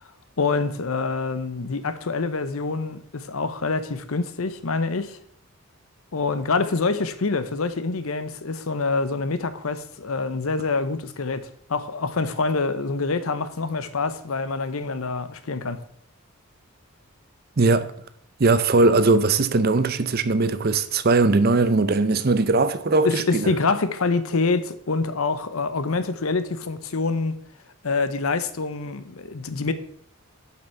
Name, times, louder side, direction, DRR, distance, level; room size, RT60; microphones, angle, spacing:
voice 1, 0.4-5.2 6.1-15.8 23.0-27.3 27.8-29.7, left 4 dB, 70° left, 0.8 m, -26 dB
voice 2, 17.6-17.9 18.4-23.5, right 3 dB, 45° right, 0.6 m, -20 dB
7.5 x 5.9 x 5.8 m
head